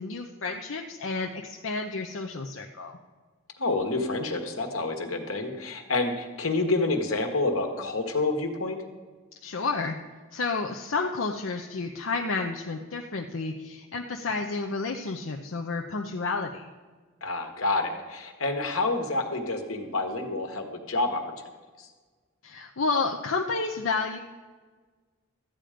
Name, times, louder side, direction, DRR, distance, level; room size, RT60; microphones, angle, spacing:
voice 1, 0.0-3.0 9.4-10.0 10.3-16.7 22.4-24.2, left 4 dB, 65° left, 2 dB, 0.7 m, -30 dB
voice 2, 3.6-8.8 17.2-21.3 21.8-21.9, left 2 dB, 85° left, 4 dB, 1.6 m, -28 dB
13.5 x 8.9 x 5.1 m, 1.4 s
head